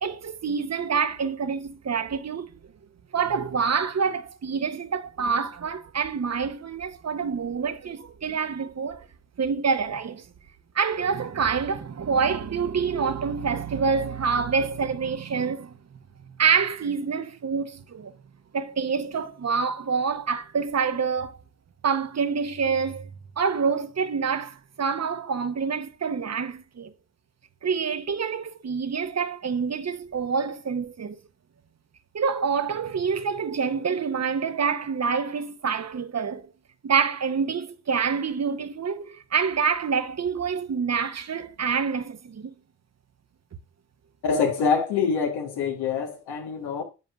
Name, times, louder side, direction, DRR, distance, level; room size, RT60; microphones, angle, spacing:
voice 1, 0.0-2.5 3.1-9.1 9.4-10.3 10.7-15.8 16.4-18.1 18.5-21.4 21.8-23.1 23.4-26.9 27.6-31.2 32.1-36.5 36.8-42.5, right 6 dB, 40° right, 0.8 m, -27 dB
voice 2, 44.2-46.8, left 5 dB, 85° left, 1.3 m, -25 dB
9.5 x 4.7 x 2.3 m
hypercardioid pair, 40°, 38 cm